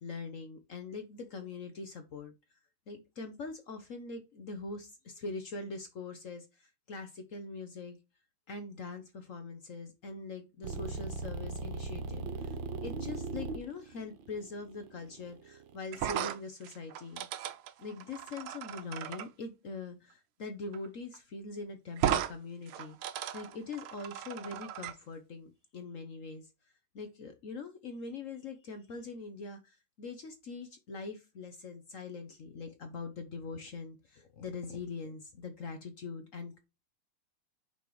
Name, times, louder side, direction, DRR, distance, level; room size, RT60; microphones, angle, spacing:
voice 1, 0.0-2.3 2.9-6.4 6.9-8.0 8.5-12.6 12.8-17.3 17.8-23.0 23.3-26.5 26.9-36.6, left 4 dB, 60° left, 7 dB, 0.8 m, -43 dB
sound 1, 10.6-15.8, right 4 dB, 65° right, 1.5 m, -39 dB
sound 2, 15.9-19.3 20.7-20.9 21.1-21.2 22.0-22.3 22.7-24.9, right 10 dB, 80° right, 1.6 m, -36 dB
5.5 x 4.2 x 4.7 m, 0.26 s
omnidirectional pair, 2.4 m